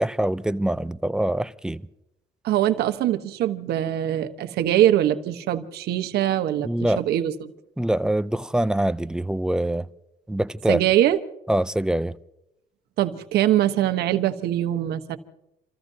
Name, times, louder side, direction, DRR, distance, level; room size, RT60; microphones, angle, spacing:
voice 1, 0.0-1.8 6.6-7.0 7.8-9.9 10.3-10.8 11.5-12.2, right 1 dB, 5° right, 0.4 m, -24 dB
voice 2, 2.4-7.5 10.7-11.2 13.0-15.2, right 12 dB, 70° right, 1.1 m, -22 dB
29.5 x 14.5 x 2.8 m
cardioid pair, 110°, 17 cm